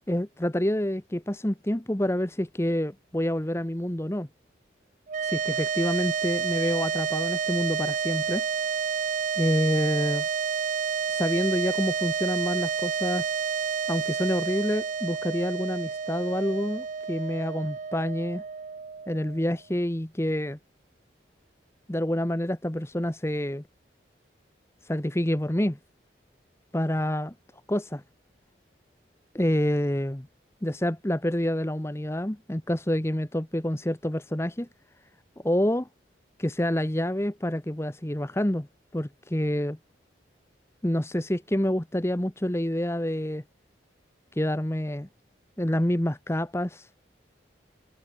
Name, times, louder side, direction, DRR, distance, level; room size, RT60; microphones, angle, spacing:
voice 1, 0.1-4.3 5.2-8.4 9.4-10.3 11.1-13.2 13.9-18.4 19.1-20.6 21.9-23.6 24.8-25.8 26.7-27.3 27.7-28.0 29.3-30.3 30.6-34.7 35.4-35.9 36.4-38.7 38.9-39.8 40.8-43.4 44.4-45.1 45.6-46.9, left 1 dB, 15° left, 1.0 m, -27 dB
sound 1, 5.1-19.5, right 6 dB, 40° right, 0.3 m, -30 dB
head